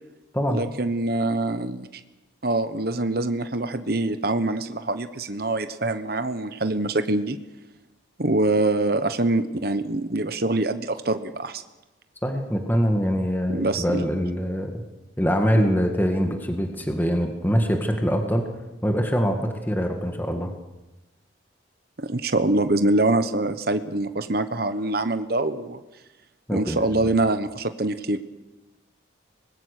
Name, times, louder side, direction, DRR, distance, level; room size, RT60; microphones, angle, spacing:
voice 1, 0.5-2.0 2.4-7.4 8.2-11.6 13.5-14.0 22.0-25.8 26.5-28.2, right 2 dB, 50° right, 10 dB, 1.1 m, -24 dB
voice 2, 12.2-14.8 15.2-18.5 18.8-20.5 26.5-26.8, equal, 10° left, 4 dB, 1.8 m, -24 dB
24.0 x 21.0 x 6.7 m, 1.0 s
head